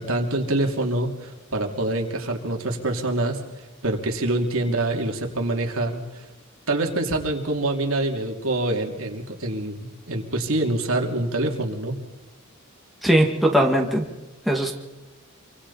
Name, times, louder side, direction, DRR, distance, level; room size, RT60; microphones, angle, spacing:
voice 1, 0.0-3.4 3.8-6.0 6.7-12.0, right 2 dB, 70° right, 2 dB, 3.0 m, -25 dB
voice 2, 13.0-14.0 14.5-14.8, right 1 dB, ahead, -1 dB, 2.2 m, -19 dB
27.0 x 25.0 x 4.3 m, 1.1 s
head